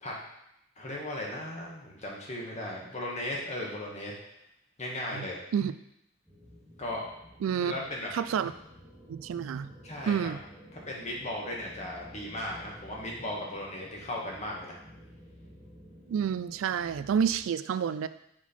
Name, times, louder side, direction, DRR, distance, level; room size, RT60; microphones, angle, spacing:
voice 1, 0.8-4.1 4.8-5.4 6.8-7.1 7.6-8.1 9.8-10.3 10.7-14.8, left 1 dB, 35° left, -2 dB, 1.3 m, -36 dB
sound 1, 6.3-17.4, equal, 5° right, 1.3 m, -52 dB
voice 2, 7.4-7.7 8.1-8.5 9.1-9.7 10.1-10.4 16.1-18.1, right 7 dB, 75° right, 14 dB, 0.3 m, -29 dB
6.0 x 4.4 x 4.3 m, 0.81 s
head